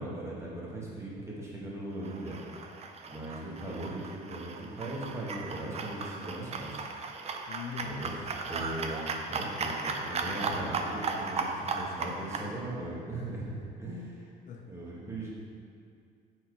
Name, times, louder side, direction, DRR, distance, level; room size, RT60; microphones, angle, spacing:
voice 1, 0.0-2.4 3.1-6.8 7.8-8.2 8.5-14.3 14.7-15.3, right 1 dB, 15° right, -5 dB, 1.6 m, -39 dB
sound 1, 2.0-12.5, right 4 dB, 40° right, 0.5 m, -36 dB
voice 2, 7.5-8.5 9.6-10.7 14.5-14.7 15.1-15.3, left 7 dB, 50° left, 2 dB, 0.5 m, -45 dB
5.7 x 4.7 x 4.7 m, 2.3 s
cardioid pair, 110°, 17 cm